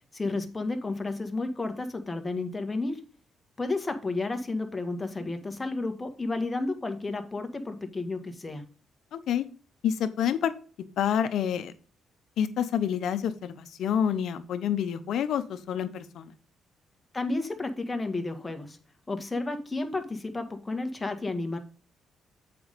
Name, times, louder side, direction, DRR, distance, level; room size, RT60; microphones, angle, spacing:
voice 1, 0.1-3.0 3.6-8.6 17.1-18.8 19.1-21.6, left 3 dB, 20° left, 6 dB, 1.6 m, -32 dB
voice 2, 9.1-9.5 9.8-10.5 11.0-11.7 12.4-16.4, left 9 dB, 70° left, 11 dB, 0.9 m, -28 dB
7.8 x 5.3 x 5.2 m, 0.38 s
cardioid pair, 90°, 0 cm